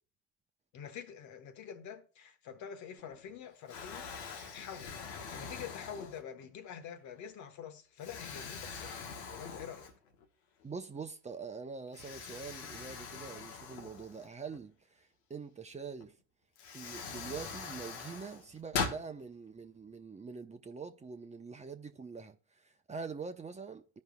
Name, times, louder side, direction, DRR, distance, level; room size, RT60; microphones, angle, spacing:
voice 1, 0.7-9.9, left 8 dB, 60° left, 1.2 m, -47 dB
Explosion, 3.0-3.4 3.7-6.5 7.1-7.3 8.0-10.3 10.6-10.7 11.9-14.6 16.0-16.1 16.6-19.1, left 5 dB, 85° left, 1.2 m, -42 dB
voice 2, 10.6-16.1 16.7-24.0, right 5 dB, 20° right, 0.9 m, -44 dB
15.0 x 5.3 x 2.3 m
hypercardioid pair, 75°, 33 cm